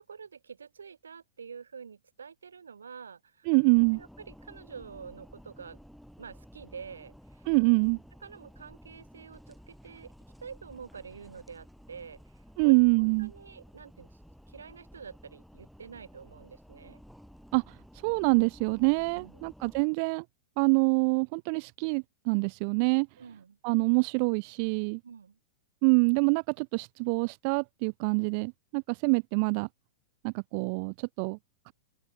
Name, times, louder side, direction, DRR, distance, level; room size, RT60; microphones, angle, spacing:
voice 1, 0.0-3.5 3.9-5.8 6.2-7.4 8.2-10.1 10.4-12.2 12.6-14.2 14.5-17.0 19.1-19.5 23.2-23.6 25.0-25.4, right 6 dB, 75° right, 3.1 m, -47 dB
voice 2, 3.5-4.0 7.5-8.0 12.6-13.3 17.5-17.8 18.0-20.2 20.6-23.1 23.6-25.0 25.8-29.7 30.2-31.4 31.7-31.8, right 35 dB, 50° right, 0.4 m, -26 dB
sound 1, 3.7-19.8, equal, ahead, 5.2 m, -53 dB
open air
figure-of-eight pair, 100°, 0 cm